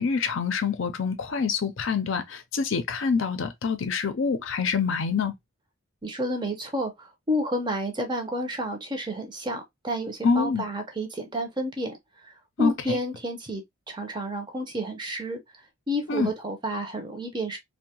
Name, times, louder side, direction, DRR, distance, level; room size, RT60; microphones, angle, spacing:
voice 1, 0.0-5.3 10.2-10.6 12.6-13.0 16.1-16.3, left 5 dB, 70° left, 0.5 m, -26 dB
voice 2, 6.0-12.0 12.2-15.4 15.9-17.6, equal, 20° right, 0.5 m, -30 dB
2.6 x 2.2 x 2.7 m
head